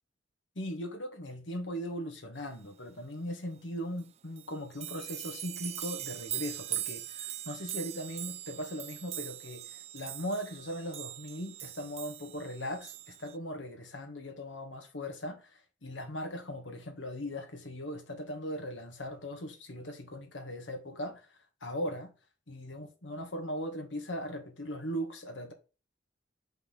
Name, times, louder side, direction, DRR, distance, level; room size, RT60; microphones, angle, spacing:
voice 1, 0.6-21.3 21.6-22.1 22.5-25.5, equal, 75° left, 1.9 m, -39 dB
sound 1, 4.0-4.1 4.4-13.4, right 12 dB, 35° right, 0.5 m, -41 dB
5.8 x 5.8 x 4.1 m
head